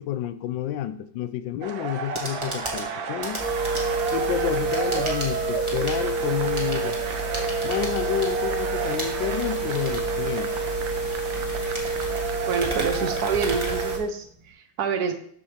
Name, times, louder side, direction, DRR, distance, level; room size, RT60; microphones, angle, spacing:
voice 1, 0.0-3.4 4.1-7.0 7.6-10.6, left 11 dB, 80° left, 12 dB, 1.3 m, -30 dB
sound 1, 1.6-14.0, right 6 dB, 90° right, 1.6 m, -33 dB
sound 2, 1.9-14.5, right 1 dB, 15° right, 1.4 m, -37 dB
sound 3, 3.4-14.0, right 3 dB, 10° left, 1.8 m, -28 dB
voice 2, 12.4-15.1, right 6 dB, 60° right, 8 dB, 1.3 m, -27 dB
13.0 x 5.0 x 3.3 m, 0.62 s
omnidirectional pair, 2.0 m